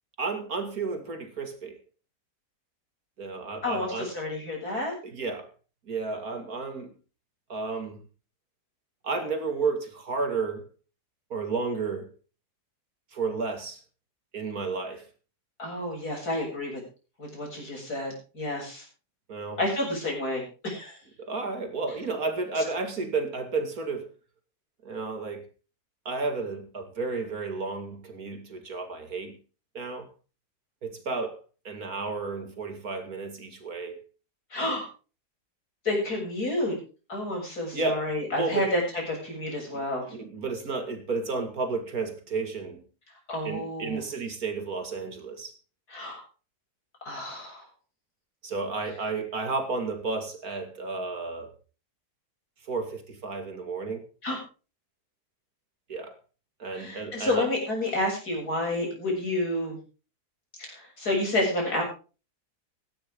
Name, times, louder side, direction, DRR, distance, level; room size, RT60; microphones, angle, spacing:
voice 1, 0.2-1.8 3.2-4.1 5.0-5.5 5.9-6.9 7.5-8.0 9.0-10.7 11.3-12.1 13.1-13.8 14.3-15.1 19.3-19.6 21.2-24.1 24.8-25.4 26.1-29.4 29.7-30.1 30.8-31.4 31.6-34.0 37.7-38.1 38.4-38.7 39.7-39.9 40.1-42.8 43.4-45.5 48.4-51.5 52.7-54.1 55.9-56.2 56.6-57.5, right 4 dB, 60° right, 2.8 m, -32 dB
voice 2, 3.6-5.0 15.6-16.8 17.2-18.8 19.6-21.0 22.6-22.7 34.5-34.9 35.8-36.8 37.1-38.8 39.1-40.1 43.3-44.0 45.9-46.2 47.0-47.6 54.2-54.4 56.7-59.8 60.6-61.8, left 1 dB, 65° left, 8.1 m, -30 dB
17.0 x 14.0 x 3.8 m
omnidirectional pair, 1.7 m